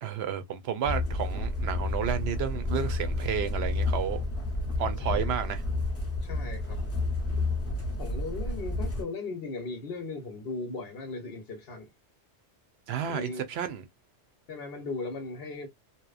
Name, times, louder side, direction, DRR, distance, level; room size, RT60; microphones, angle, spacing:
voice 1, 0.0-4.2 4.8-5.6 12.9-13.8, right 8 dB, 70° right, 0.8 m, -31 dB
sound 1, 0.8-9.0, left 2 dB, 15° left, 0.5 m, -30 dB
voice 2, 6.2-6.8 8.0-11.9 13.1-13.4 14.5-15.7, left 3 dB, 60° left, 0.9 m, -37 dB
2.8 x 2.0 x 2.3 m
omnidirectional pair, 1.2 m